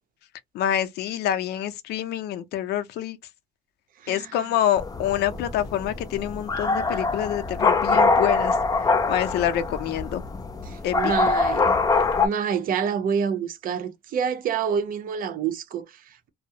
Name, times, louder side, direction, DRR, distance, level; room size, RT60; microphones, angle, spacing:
voice 1, 0.5-3.2 4.1-8.6 9.1-10.2 10.8-11.1, left 11 dB, 75° left, 0.5 m, -26 dB
voice 2, 4.0-4.4 10.7-11.7 12.2-16.3, right 7 dB, 55° right, 0.6 m, -27 dB
sound 1, 4.8-12.3, left 4 dB, 20° left, 0.5 m, -23 dB
2.3 x 2.0 x 2.7 m
cardioid pair, 110°, 17 cm